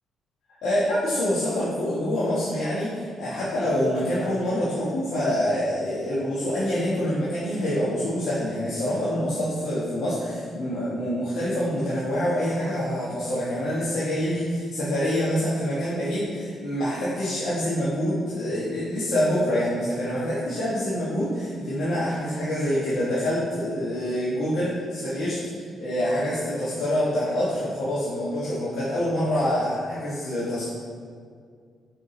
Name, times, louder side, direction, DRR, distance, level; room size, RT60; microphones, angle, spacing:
voice 1, 0.6-30.7, equal, 75° left, -9 dB, 1.4 m, -26 dB
5.9 x 4.9 x 3.9 m, 2.1 s
cardioid pair, 170°, 0 cm